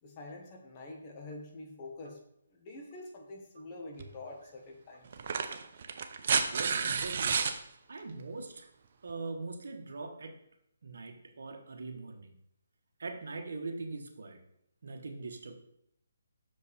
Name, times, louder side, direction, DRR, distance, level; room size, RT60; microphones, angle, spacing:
voice 1, 0.0-2.2 2.5-5.1, left 2 dB, 25° left, 1 dB, 1.3 m, -46 dB
sound 1, 4.0-4.1 5.1-7.6 9.1-9.2, right 6 dB, 50° right, 0.6 m, -30 dB
voice 2, 6.5-7.5 7.9-8.7 9.0-10.4 10.8-12.3 13.0-14.4 14.8-15.6, right 3 dB, 70° right, 4 dB, 1.2 m, -41 dB
6.5 x 5.2 x 4.2 m, 0.75 s
hypercardioid pair, 160°, 0 cm